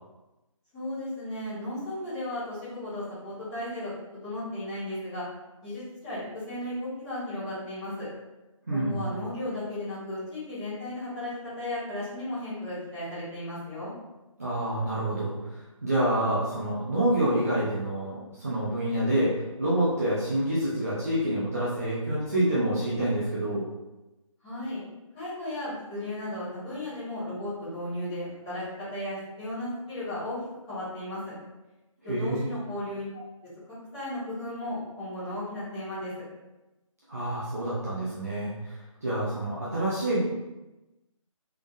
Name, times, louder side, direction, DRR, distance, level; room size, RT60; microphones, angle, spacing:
voice 1, 0.7-3.9 4.2-5.2 5.6-8.1 8.7-13.9 24.4-24.8 25.1-30.4 30.7-31.3 32.0-33.2 33.9-36.1, left 1 dB, 10° left, -15 dB, 1.4 m, -35 dB
voice 2, 8.7-9.0 14.4-23.6 32.0-32.5 37.1-40.2, right 1 dB, 25° right, -9 dB, 0.5 m, -27 dB
3.6 x 3.4 x 2.5 m, 1.0 s
hypercardioid pair, 175°, 18 cm